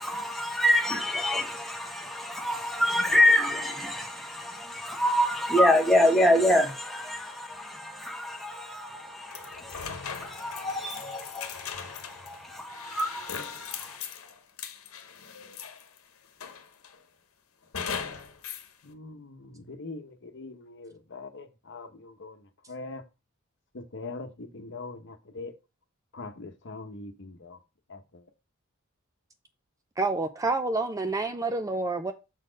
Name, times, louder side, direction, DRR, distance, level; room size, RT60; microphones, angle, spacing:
voice 1, 0.0-13.9, left 1 dB, ahead, 1.3 m, -26 dB
sound 1, 9.3-16.0 16.4-17.0 17.7-18.7, left 7 dB, 85° left, 1.0 m, -39 dB
voice 2, 18.8-22.4 22.7-23.0 23.7-25.5 26.1-27.6 27.9-28.2, left 3 dB, 60° left, 1.0 m, -42 dB
voice 3, 30.0-32.1, right 3 dB, 15° right, 0.4 m, -28 dB
6.7 x 4.2 x 5.0 m
head